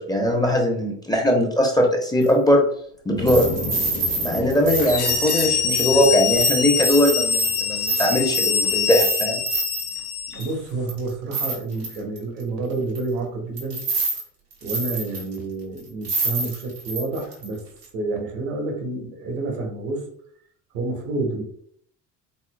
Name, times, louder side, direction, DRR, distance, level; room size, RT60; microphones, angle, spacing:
voice 1, 0.0-2.6 3.0-3.5 4.2-9.4, equal, 10° left, 1 dB, 0.9 m, -20 dB
sound 1, 2.2-2.3 3.3-9.9 10.4-10.5 10.9-12.2 13.0-13.1 13.6-14.2 14.5-15.4 15.8-15.9 16.0-17.5 17.8-17.9, right 3 dB, 80° right, 1.6 m, -27 dB
sound 2, 3.2-9.0, left 3 dB, 35° left, 1.2 m, -36 dB
sound 3, 4.8-10.5, left 6 dB, 70° left, 0.9 m, -24 dB
voice 2, 10.3-13.8 14.6-17.6 17.9-20.1 20.7-21.4, right 3 dB, 60° right, 2 dB, 1.3 m, -29 dB
4.2 x 4.0 x 2.2 m, 0.62 s
figure-of-eight pair, 55°, 46 cm